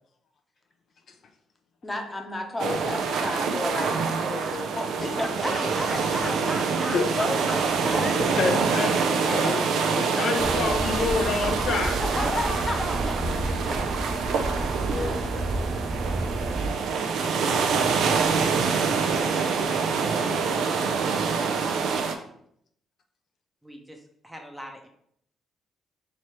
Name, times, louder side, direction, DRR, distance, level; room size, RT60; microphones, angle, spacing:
voice 1, 1.8-4.5 4.7-6.4 7.2-8.8 9.3-9.4 9.9-10.2 12.0-12.8 13.0-13.1 13.7-13.8 14.9-15.2, left 1 dB, 20° left, 3 dB, 0.8 m, -33 dB
sound 1, 2.6-15.4, left 4 dB, 45° left, 1.0 m, -44 dB
sound 2, 2.6-22.2, right 5 dB, 75° right, 0.5 m, -26 dB
voice 2, 5.0-7.5 8.0-8.3 12.2-13.0 23.6-24.9, equal, 5° right, 2 dB, 0.7 m, -35 dB
voice 3, 8.4-12.0, left 4 dB, 65° left, 4 dB, 0.5 m, -28 dB
sound 3, 10.4-16.7, right 2 dB, 40° right, 0.9 m, -31 dB
3.1 x 2.9 x 4.4 m, 0.70 s
cardioid pair, 90°, 0 cm